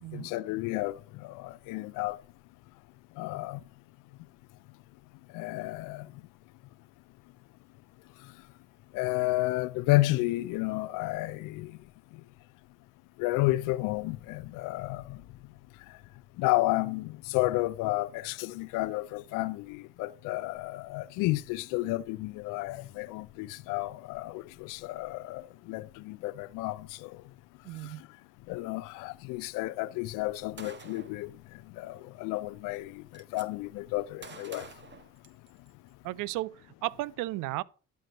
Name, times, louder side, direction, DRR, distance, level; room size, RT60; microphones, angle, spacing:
voice 1, 0.1-2.2 3.2-3.6 5.3-6.1 8.9-11.8 13.2-15.2 16.4-27.2 28.5-31.3 31.8-34.7, left 19 dB, 90° left, 0.5 m, -31 dB
voice 2, 27.6-28.0 36.0-37.6, right 17 dB, 85° right, 0.5 m, -34 dB
Gunshot gunfire, 30.6-31.2 32.4-32.5 32.7-33.5 34.2-35.7, right 4 dB, 35° right, 1.3 m, -48 dB
11.5 x 4.6 x 6.4 m
supercardioid pair, 60°, 31 cm